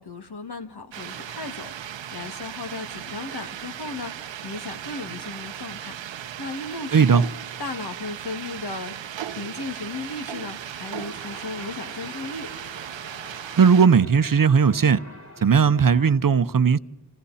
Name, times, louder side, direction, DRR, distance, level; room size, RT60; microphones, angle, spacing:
voice 1, 0.0-5.9 6.4-7.2 7.6-9.0 9.3-12.5, left 3 dB, 60° left, 2.2 m, -35 dB
sound 1, 0.9-13.9, right 10 dB, 90° right, 0.8 m, -37 dB
voice 2, 6.9-7.2 13.6-15.0 15.4-16.8, right 6 dB, 50° right, 0.8 m, -17 dB
sound 2, 11.0-16.1, left 2 dB, 40° left, 4.4 m, -45 dB
28.5 x 27.5 x 4.2 m
cardioid pair, 50°, 43 cm